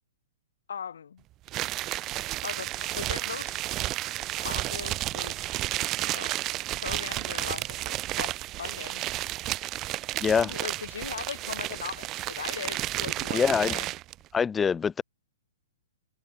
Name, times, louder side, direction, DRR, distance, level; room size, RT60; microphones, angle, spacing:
voice 1, 0.7-1.2 2.4-3.5 4.4-5.6 6.0-6.4 6.8-9.0 10.3-13.9, left 7 dB, 75° left, 3.9 m, -39 dB
sound 1, 1.5-14.1, right 16 dB, 15° right, 2.5 m, -32 dB
voice 2, 10.2-10.5 13.3-13.8 14.3-15.0, left 6 dB, 5° left, 0.4 m, -24 dB
hypercardioid pair, 180°, 0 cm